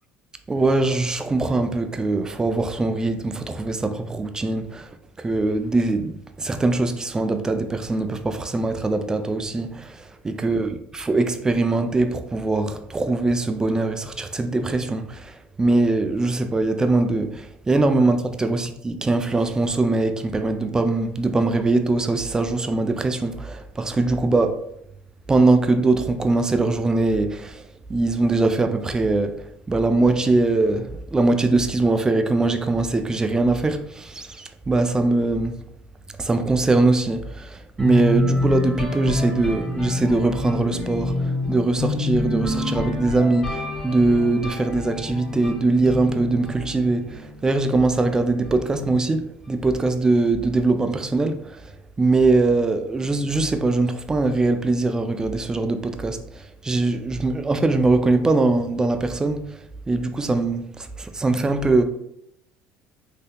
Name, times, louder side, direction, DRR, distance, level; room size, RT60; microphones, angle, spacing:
voice 1, 0.5-4.9 5.2-24.6 25.3-27.6 27.9-35.6 36.2-51.6 52.0-59.5 59.9-61.8, right 2 dB, 15° right, 0.3 m, -22 dB
sound 1, 37.8-47.6, left 2 dB, 15° left, 1.2 m, -27 dB
3.5 x 2.7 x 2.3 m
supercardioid pair, 105°, 4 cm